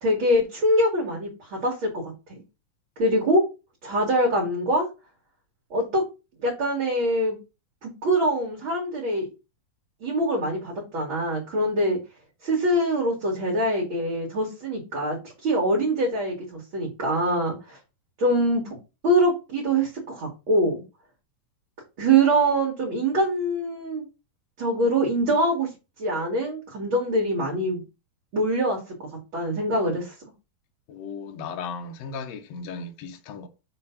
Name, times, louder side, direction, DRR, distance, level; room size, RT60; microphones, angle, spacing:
voice 1, 0.0-2.4 3.0-3.4 3.8-4.9 5.7-6.0 6.4-7.4 7.8-9.3 10.0-12.0 12.4-15.2 15.4-17.8 18.2-18.7 19.0-20.8 22.0-24.0 24.6-25.7 26.0-27.8 28.3-28.8 29.3-30.1, right 1 dB, 45° right, 2.0 m, -24 dB
voice 2, 30.9-33.5, left 5 dB, 65° left, 1.8 m, -36 dB
6.8 x 3.2 x 5.6 m
omnidirectional pair, 4.0 m